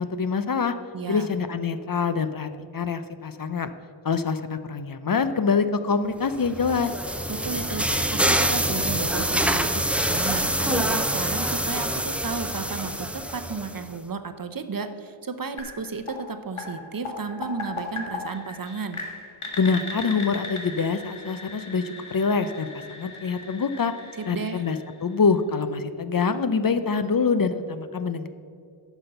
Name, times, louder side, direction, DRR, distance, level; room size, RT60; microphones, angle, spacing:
voice 1, 0.0-0.7 1.1-3.7 4.0-6.9 19.6-23.9 24.3-28.3, left 5 dB, 45° left, 11 dB, 0.6 m, -25 dB
voice 2, 0.9-1.3 7.3-9.8 10.1-19.0 24.2-24.6, right 4 dB, 45° right, 9 dB, 0.7 m, -33 dB
sound 1, 6.3-13.9, right 1 dB, 5° right, 0.5 m, -26 dB
sound 2, 15.6-25.4, left 3 dB, 85° left, 1.7 m, -38 dB
10.5 x 6.1 x 6.7 m, 2.3 s
wide cardioid pair, 70°, 48 cm